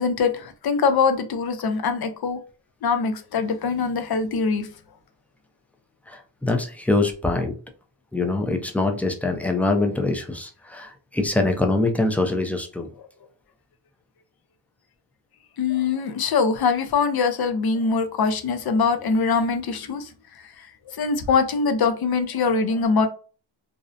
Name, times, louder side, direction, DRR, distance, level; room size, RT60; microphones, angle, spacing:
voice 1, 0.0-2.4 2.8-4.7 15.6-20.1 21.0-23.1, left 5 dB, 55° left, 9 dB, 0.5 m, -23 dB
voice 2, 6.1-7.5 8.1-12.9, left 2 dB, 5° left, 3 dB, 0.4 m, -24 dB
2.6 x 2.0 x 2.5 m, 0.37 s
wide cardioid pair, 65°, 44 cm